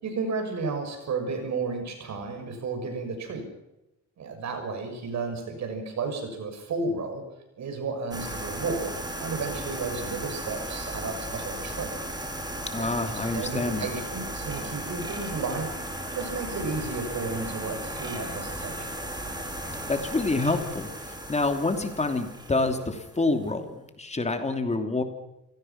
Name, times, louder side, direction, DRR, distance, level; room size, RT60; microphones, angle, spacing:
voice 1, 0.0-3.5 4.2-7.2 7.6-11.9 12.8-15.7 16.1-19.0, right 4 dB, 65° right, 6 dB, 6.7 m, -33 dB
sound 1, 8.1-23.5, right 1 dB, 15° right, 5.8 m, -36 dB
voice 2, 12.7-13.9 19.9-20.9 21.3-25.0, left 2 dB, 20° left, 6 dB, 3.0 m, -27 dB
27.5 x 18.0 x 6.0 m, 0.94 s
cardioid pair, 90°, 30 cm